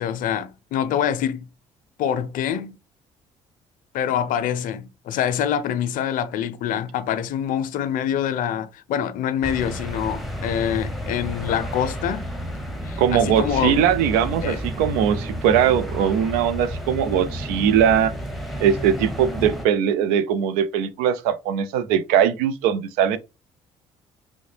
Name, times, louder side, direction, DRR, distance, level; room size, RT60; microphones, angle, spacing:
voice 1, 0.0-1.5 2.0-2.7 3.9-12.3 12.8-13.8 14.4-14.6, left 9 dB, 70° left, 0.5 m, -25 dB
sound 1, 9.4-19.6, equal, ahead, 0.8 m, -31 dB
voice 2, 13.0-18.1 18.6-23.2, right 9 dB, 80° right, 0.4 m, -20 dB
3.6 x 2.1 x 3.2 m
hypercardioid pair, 55°, 15 cm